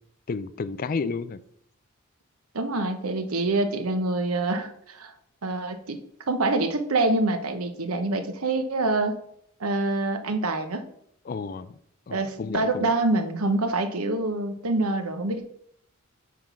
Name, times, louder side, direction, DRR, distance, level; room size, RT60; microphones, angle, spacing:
voice 1, 0.3-1.4 11.3-11.7 12.1-12.9, left 4 dB, 40° left, 16 dB, 0.4 m, -31 dB
voice 2, 2.5-5.1 5.4-9.2 9.6-10.9 12.1-15.5, right 2 dB, 90° right, 8 dB, 1.0 m, -26 dB
9.4 x 3.7 x 6.0 m, 0.70 s
head